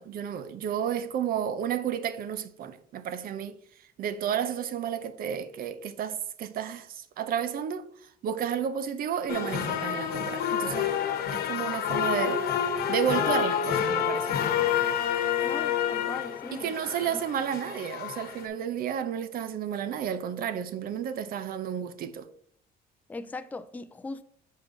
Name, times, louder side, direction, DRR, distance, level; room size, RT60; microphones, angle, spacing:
voice 1, 0.0-3.6 4.0-7.9 8.2-10.9 11.3-12.4 12.9-14.4 16.5-22.3, right 9 dB, 60° right, 0.7 m, -32 dB
sound 1, 9.3-18.5, left 9 dB, 70° left, 1.1 m, -28 dB
voice 2, 15.4-17.2 23.1-24.2, left 3 dB, 10° left, 0.4 m, -39 dB
6.5 x 5.2 x 3.9 m
cardioid pair, 110°, 17 cm